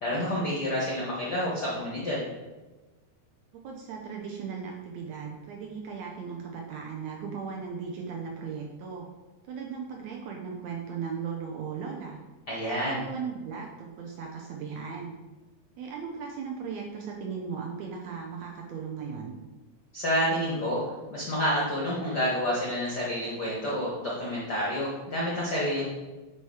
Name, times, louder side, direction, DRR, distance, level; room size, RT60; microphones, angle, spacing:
voice 1, 0.0-2.3 12.5-13.0 19.9-20.8 21.1-25.9, equal, 80° left, -5 dB, 0.9 m, -29 dB
voice 2, 3.5-9.1 9.4-12.2 12.7-15.1 15.8-19.4, right 6 dB, 75° right, 0 dB, 1.6 m, -37 dB
8.2 x 3.1 x 4.8 m, 1.2 s
omnidirectional pair, 3.7 m